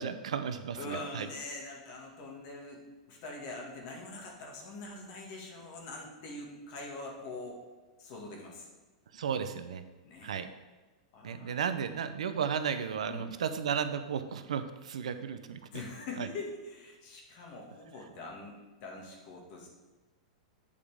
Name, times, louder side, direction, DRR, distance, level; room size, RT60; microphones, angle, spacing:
voice 1, 0.0-1.3 9.1-9.8 10.2-10.5 11.2-15.6 16.2-16.3, right 7 dB, 80° right, 10 dB, 0.6 m, -34 dB
voice 2, 0.8-2.8 3.1-7.6 8.0-8.7 10.0-10.4 11.1-11.6 13.1-13.3 15.7-19.7, left 2 dB, 50° left, -1 dB, 1.9 m, -43 dB
8.4 x 5.0 x 3.5 m, 1.2 s
hypercardioid pair, 115°, 3 cm